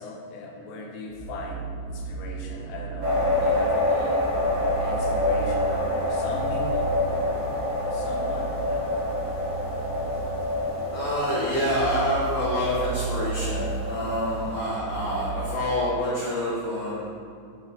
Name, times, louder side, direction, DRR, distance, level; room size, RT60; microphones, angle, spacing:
voice 1, 0.0-4.3 4.8-7.4 7.9-9.1, left 2 dB, 85° left, 1 dB, 2.8 m, -38 dB
sound 1, 1.1-15.6, right 4 dB, 90° right, 3.4 m, -35 dB
sound 2, 3.0-14.6, left 2 dB, 50° right, 2.0 m, -27 dB
voice 2, 10.9-17.1, left 1 dB, 65° left, -8 dB, 2.2 m, -27 dB
8.8 x 4.2 x 5.2 m, 2.4 s
omnidirectional pair, 5.2 m